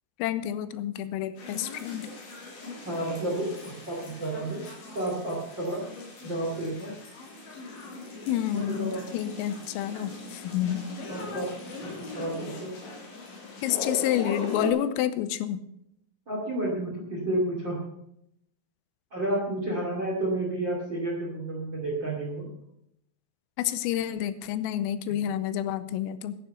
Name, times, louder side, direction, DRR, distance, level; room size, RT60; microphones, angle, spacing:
voice 1, 0.2-2.1 8.3-10.8 13.6-15.6 23.6-26.4, left 11 dB, 85° left, 14 dB, 3.3 m, -29 dB
sound 1, 1.4-14.7, left 3 dB, 65° left, 5.7 m, -39 dB
voice 2, 2.8-4.6 4.9-5.9 6.2-6.9 8.5-9.0 11.1-11.5 11.8-12.7 16.3-17.8 19.1-22.5 25.1-25.2, right 1 dB, 35° right, -1 dB, 1.9 m, -31 dB
11.5 x 10.0 x 6.7 m, 0.78 s
omnidirectional pair, 5.9 m